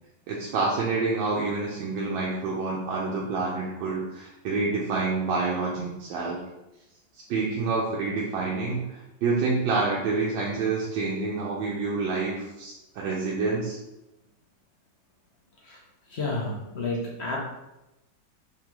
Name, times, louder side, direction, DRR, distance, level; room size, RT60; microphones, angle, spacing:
voice 1, 0.3-6.4 7.3-13.8, right 3 dB, 90° right, -4 dB, 1.4 m, -28 dB
voice 2, 16.1-17.4, left 2 dB, 55° left, -2 dB, 0.7 m, -30 dB
3.7 x 3.6 x 3.0 m, 0.93 s
omnidirectional pair, 1.9 m